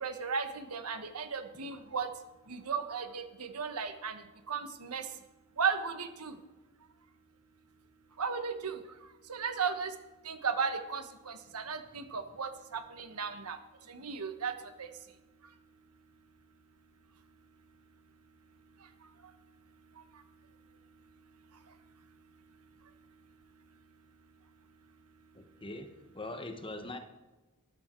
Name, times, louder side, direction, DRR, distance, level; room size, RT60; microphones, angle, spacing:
voice 1, 0.0-2.1 2.5-4.1 4.5-5.0 5.6-6.3 8.2-8.7 9.3-9.9 10.3-13.6 14.0-14.5, right 5 dB, 85° right, 8 dB, 1.3 m, -35 dB
voice 2, 25.3-27.0, left 2 dB, 25° left, 7 dB, 1.1 m, -42 dB
13.5 x 11.5 x 4.6 m, 1.1 s
head